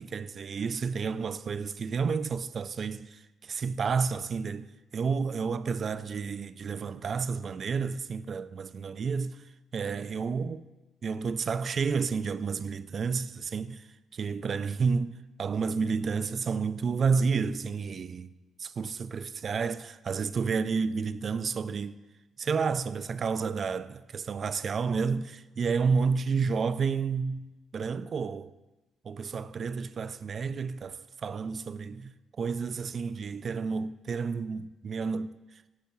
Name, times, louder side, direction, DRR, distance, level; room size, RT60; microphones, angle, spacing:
voice 1, 0.0-9.4 9.7-10.6 11.0-13.8 14.1-18.3 18.8-22.0 22.4-28.5 29.0-35.3, right 5 dB, 50° right, 0.3 m, -30 dB
10.5 x 3.7 x 6.0 m
cardioid pair, 90°, 0 cm